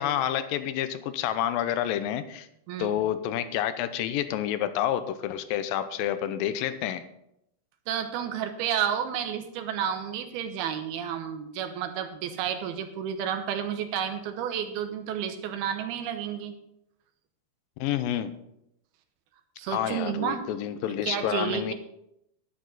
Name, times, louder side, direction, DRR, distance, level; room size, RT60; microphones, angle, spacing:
voice 1, 0.0-2.5 2.8-7.0 17.8-18.4 19.7-21.7, left 11 dB, 80° left, 12 dB, 2.2 m, -29 dB
voice 2, 2.7-3.0 7.9-16.5 19.6-20.5 21.0-21.7, right 9 dB, 80° right, 7 dB, 2.9 m, -31 dB
11.0 x 11.0 x 4.0 m, 0.80 s
omnidirectional pair, 4.5 m